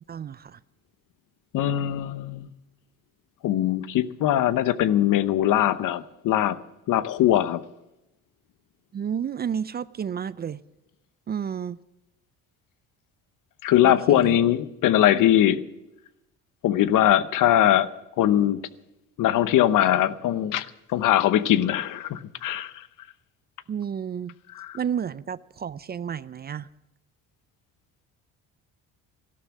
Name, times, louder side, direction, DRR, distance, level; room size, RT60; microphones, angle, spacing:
voice 1, 0.1-0.6 8.9-10.6 11.3-11.8 13.8-14.4 23.7-24.3 24.7-26.7, right 8 dB, 30° right, 0.4 m, -31 dB
voice 2, 1.5-2.5 3.4-6.6 6.9-7.6 13.6-15.6 16.6-17.9 18.2-18.6 19.2-22.9 24.6-24.8, left 12 dB, 65° left, 0.9 m, -21 dB
13.5 x 12.5 x 7.2 m
cardioid pair, 90°, 35 cm